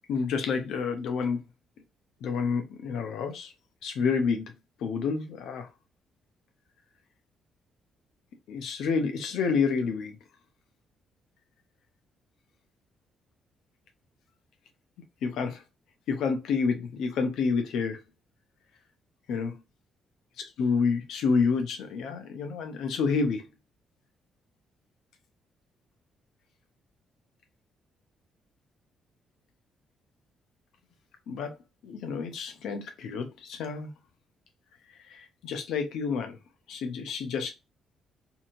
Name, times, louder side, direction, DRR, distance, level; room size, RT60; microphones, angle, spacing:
voice 1, 0.1-1.4 2.2-3.5 3.8-4.5 4.8-5.7 8.5-10.2 15.2-15.6 16.1-18.0 19.3-19.5 20.6-23.4 31.3-31.5 31.8-33.9 35.1-36.4 36.7-37.5, left 5 dB, 80° left, 0.7 m, -29 dB
2.8 x 2.7 x 2.6 m
cardioid pair, 90°, 0 cm